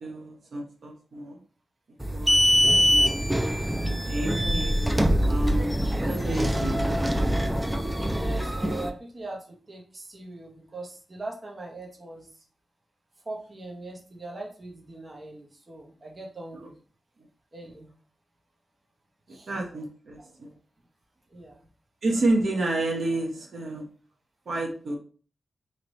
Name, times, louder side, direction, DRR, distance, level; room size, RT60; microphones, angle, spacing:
voice 1, 0.0-1.4 2.1-2.5 2.9-3.0 4.0-7.1 16.6-16.7 19.5-20.5 22.0-23.8 24.5-25.0, right 2 dB, 55° right, 0 dB, 0.8 m, -30 dB
sound 1, 2.0-8.9, equal, 5° right, 0.4 m, -24 dB
voice 2, 8.1-12.3 13.2-16.7 17.5-17.9 19.3-19.5 20.4-20.5 21.3-21.7, right 2 dB, 30° right, -1 dB, 0.9 m, -41 dB
3.2 x 2.9 x 3.9 m, 0.39 s
wide cardioid pair, 165°, 0 cm